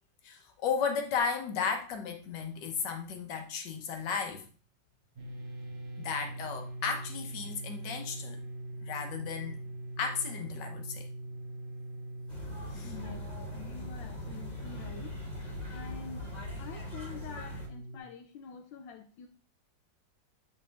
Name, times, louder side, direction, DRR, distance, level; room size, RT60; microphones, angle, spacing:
voice 1, 0.2-4.5 6.0-8.4 8.8-9.6 10.0-11.1 12.7-12.9, left 6 dB, 70° left, 5 dB, 1.7 m, -34 dB
sound 1, 5.2-18.0, right 1 dB, 45° right, 1.0 m, -42 dB
sound 2, 12.3-17.7, left 2 dB, 25° left, 1.7 m, -42 dB
voice 2, 12.6-15.2 15.7-19.3, left 6 dB, 90° left, 3 dB, 1.4 m, -47 dB
9.4 x 3.7 x 3.4 m, 0.38 s
omnidirectional pair, 2.0 m